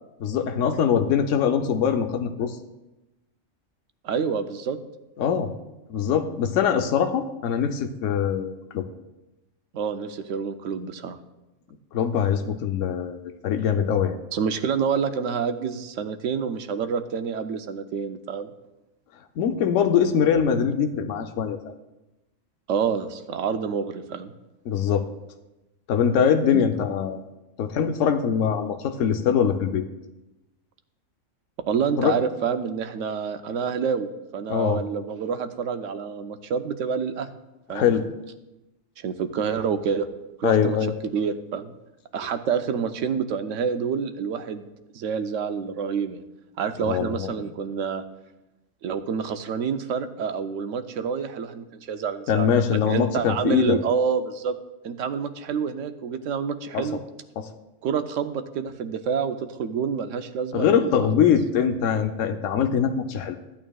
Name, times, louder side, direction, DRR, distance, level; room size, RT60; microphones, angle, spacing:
voice 1, 0.2-2.6 5.2-5.5 5.9-8.8 11.9-14.2 19.4-21.6 24.7-25.1 25.9-27.2 27.6-29.8 32.0-32.2 34.5-34.8 37.7-38.1 40.4-40.9 46.8-47.3 52.3-53.8 56.7-56.9 57.4-57.5 60.5-63.4, left 7 dB, 80° left, 6 dB, 1.0 m, -23 dB
voice 2, 4.0-4.8 9.7-11.2 14.3-18.5 22.7-24.3 26.5-26.6 31.7-37.3 37.7-37.8 39.0-40.1 40.4-40.8 41.1-41.7 42.1-44.6 44.9-46.2 46.6-48.0 48.8-52.6 52.9-54.6 54.8-57.0 57.8-60.9, right 6 dB, 85° right, 9 dB, 1.0 m, -27 dB
14.5 x 8.7 x 2.3 m, 0.99 s
omnidirectional pair, 1.3 m